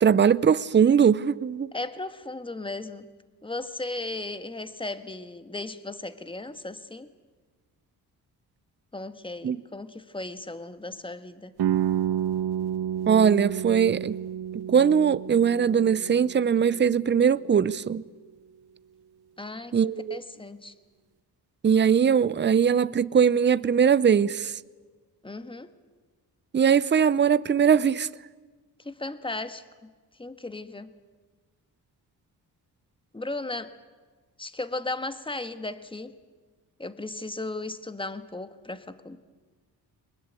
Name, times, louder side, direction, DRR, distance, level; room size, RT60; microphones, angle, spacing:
voice 1, 0.0-1.7 9.4-9.6 13.1-14.2 14.7-18.0 19.7-20.2 21.6-24.5 26.5-28.1, right 7 dB, 30° right, 0.6 m, -21 dB
voice 2, 1.7-3.1 3.4-7.1 8.9-11.5 19.4-20.7 25.2-25.7 28.8-29.9 30.2-30.9 33.1-33.7 34.4-36.2 36.8-39.2, left 2 dB, 15° left, 1.5 m, -36 dB
sound 1, 11.6-17.4, right 10 dB, 75° right, 1.0 m, -30 dB
23.0 x 20.5 x 8.4 m
cardioid pair, 75°, 39 cm